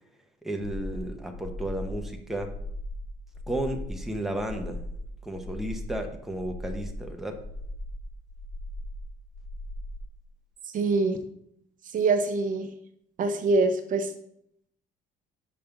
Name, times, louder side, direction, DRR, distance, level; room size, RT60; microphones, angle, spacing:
voice 1, 0.4-2.5 3.5-4.8 5.2-7.4, right 1 dB, ahead, 3 dB, 0.9 m, -33 dB
sound 1, 0.6-10.0, left 1 dB, 70° left, 1.0 m, -38 dB
voice 2, 10.7-11.2 11.9-12.7 13.2-14.1, right 3 dB, 50° right, 7 dB, 0.8 m, -24 dB
5.4 x 5.1 x 5.8 m, 0.73 s
cardioid pair, 110°, 17 cm